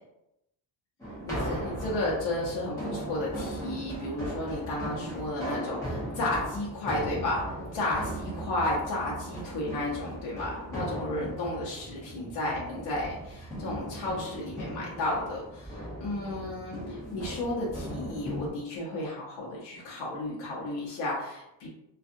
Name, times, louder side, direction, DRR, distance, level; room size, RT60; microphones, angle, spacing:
sound 1, 1.0-18.5, right 1 dB, 5° left, 0.8 m, -38 dB
voice 1, 1.2-7.4 7.7-21.7, left 1 dB, 70° left, -5 dB, 0.8 m, -33 dB
2.6 x 2.4 x 2.5 m, 0.87 s
cardioid pair, 180°, 45 cm